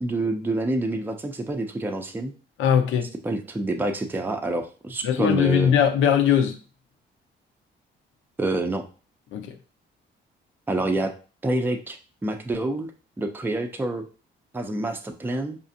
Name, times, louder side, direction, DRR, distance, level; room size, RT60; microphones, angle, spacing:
voice 1, 0.0-2.3 3.2-5.8 8.4-8.8 10.7-11.1 11.4-12.9 13.2-14.0 14.5-15.6, right 2 dB, 10° right, 0.5 m, -27 dB
voice 2, 2.6-3.1 5.0-6.6 9.3-9.5, left 8 dB, 80° left, 0.7 m, -20 dB
5.0 x 2.4 x 2.7 m
cardioid pair, 90°, 20 cm